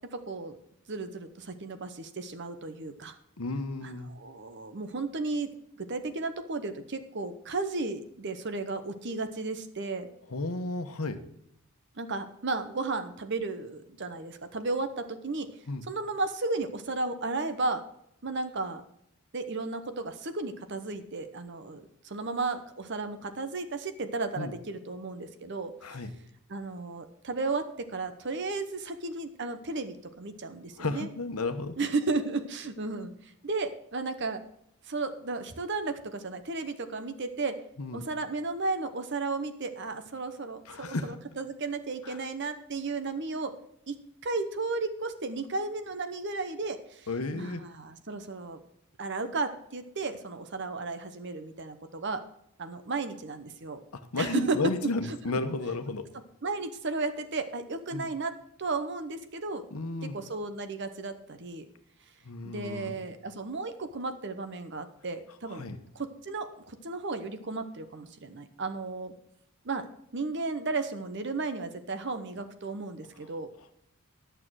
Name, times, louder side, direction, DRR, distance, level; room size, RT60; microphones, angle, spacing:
voice 1, 0.1-0.6 0.9-3.2 3.8-5.5 5.8-10.1 12.0-15.5 15.9-17.8 18.2-18.8 19.3-26.0 26.5-31.1 31.8-34.4 34.9-37.6 37.9-40.9 41.4-43.5 43.9-47.1 47.3-48.6 49.0-52.2 52.6-53.8 54.2-54.6 55.3-55.4 56.4-58.3 58.6-59.6 60.1-61.7 62.4-65.6 65.9-69.1 69.6-69.8 70.1-73.5, right 3 dB, 50° right, 9 dB, 0.9 m, -34 dB
voice 2, 3.4-4.1 10.3-11.2 15.7-15.8 24.4-24.5 25.8-26.1 30.8-31.8 37.8-38.1 40.7-41.2 42.0-42.2 47.1-47.6 53.9-56.1 57.9-58.1 59.7-60.2 62.2-63.0 65.5-65.8, left 2 dB, 80° left, 8 dB, 1.0 m, -33 dB
11.0 x 6.7 x 6.2 m, 0.73 s
head